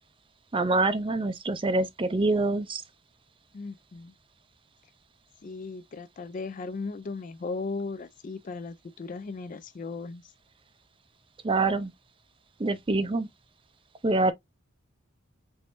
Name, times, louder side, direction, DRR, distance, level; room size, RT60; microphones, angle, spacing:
voice 1, 0.5-2.8 11.4-11.9 12.6-13.3 14.0-14.3, right 2 dB, 25° right, 0.5 m, -25 dB
voice 2, 3.5-4.1 5.4-10.2, left 3 dB, 40° left, 0.4 m, -37 dB
4.5 x 3.1 x 2.5 m
head